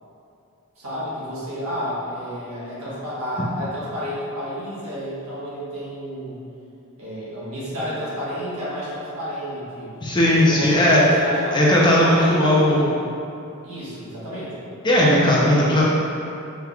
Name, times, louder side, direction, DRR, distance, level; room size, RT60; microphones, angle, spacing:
voice 1, 0.7-6.4 7.0-9.9 10.2-13.0 13.6-14.6, equal, 65° right, -10 dB, 1.3 m, -31 dB
voice 2, 10.0-11.0 11.5-12.8 14.8-15.8, left 1 dB, 20° left, -6 dB, 0.5 m, -17 dB
4.7 x 3.1 x 2.4 m, 2.7 s
head